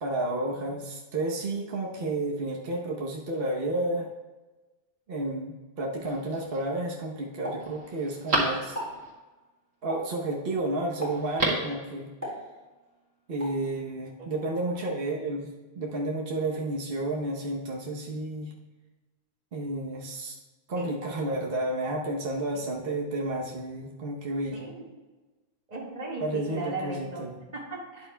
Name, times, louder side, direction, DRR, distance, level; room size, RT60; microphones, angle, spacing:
voice 1, 0.0-4.1 5.1-8.8 9.8-12.1 13.3-15.5 15.7-18.5 19.5-20.4 20.7-24.6 26.2-27.3, right 2 dB, 60° right, -2 dB, 1.2 m, -31 dB
Telephone, 6.0-6.6 7.1-7.2 7.6-9.1 11.1-11.8 12.1-12.2, right 2 dB, 80° right, 2.1 m, -31 dB
Explosion, 7.4-8.3 8.6-9.0 9.9-10.3 11.0-11.4 12.2-12.9 13.4-13.6, equal, 15° right, 2.9 m, -37 dB
voice 2, 14.2-14.8 20.7-21.4 22.5-22.6 24.5-24.7 25.7-27.2 27.5-28.1, right 2 dB, 40° right, -5 dB, 1.9 m, -38 dB
12.0 x 9.2 x 2.2 m, 1.2 s
omnidirectional pair, 1.1 m